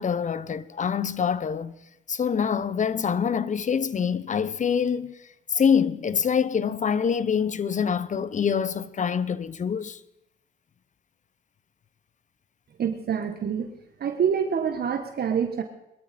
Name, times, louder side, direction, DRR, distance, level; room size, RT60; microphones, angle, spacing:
voice 1, 0.0-1.7 2.1-5.2 5.5-10.0, left 7 dB, 40° left, 0.8 m, -25 dB
voice 2, 12.8-13.7 14.0-15.6, right 7 dB, 55° right, 1.2 m, -26 dB
21.5 x 13.5 x 4.3 m
cardioid pair, 90°, 20 cm